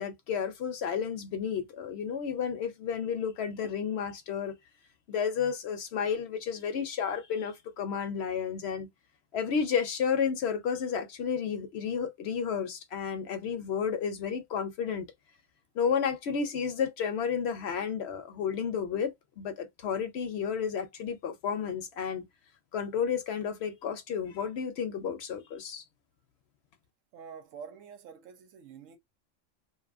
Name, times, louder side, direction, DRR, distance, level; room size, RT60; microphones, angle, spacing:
voice 1, 0.0-4.5 5.1-8.9 9.3-15.1 15.8-22.2 22.7-25.8, left 7 dB, 65° left, 0.7 m, -32 dB
voice 2, 27.1-29.0, right 6 dB, 90° right, 1.0 m, -47 dB
2.6 x 2.3 x 2.4 m
omnidirectional pair, 1.3 m